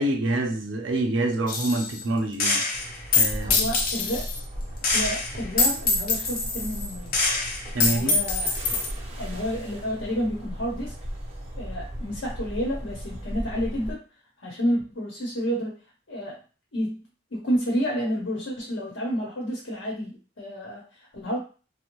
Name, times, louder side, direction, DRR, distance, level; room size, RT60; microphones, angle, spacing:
voice 1, 0.0-2.6 3.1-3.6 7.7-8.2, right 2 dB, 85° right, 0.5 m, -26 dB
Gunshot gunfire, 1.5-2.0 2.4-4.4 4.8-8.9, left 4 dB, 50° left, 0.5 m, -24 dB
sound 1, 2.7-13.9, equal, 35° right, 0.5 m, -37 dB
voice 2, 3.4-4.3 4.8-7.2 7.8-8.5 9.2-10.9 11.6-14.0 14.4-15.8 16.1-16.4 16.7-17.1 17.3-21.4, equal, 85° left, 0.9 m, -30 dB
2.5 x 2.0 x 3.0 m
head